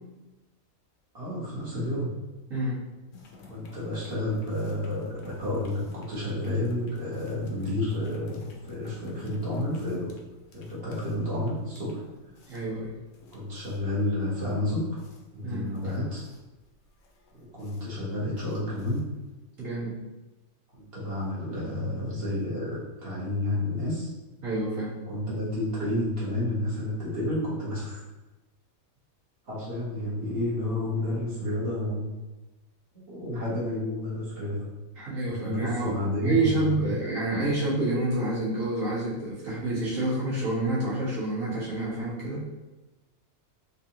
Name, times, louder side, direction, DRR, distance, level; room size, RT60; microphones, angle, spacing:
voice 1, 1.1-2.1 3.4-10.1 10.5-12.0 13.2-15.0 15.3-16.2 17.3-19.1 20.7-24.1 25.1-28.0 29.5-32.2 32.9-34.7 35.3-37.0, left 1 dB, 45° right, -7 dB, 1.5 m, -30 dB
voice 2, 2.5-2.8 12.5-12.9 15.4-15.7 19.6-20.0 24.4-24.9 35.0-42.5, right 2 dB, 70° right, -8 dB, 1.7 m, -28 dB
sound 1, 3.1-19.4, left 3 dB, 70° left, 0.9 m, -49 dB
4.0 x 2.6 x 2.8 m, 1.1 s
omnidirectional pair, 1.4 m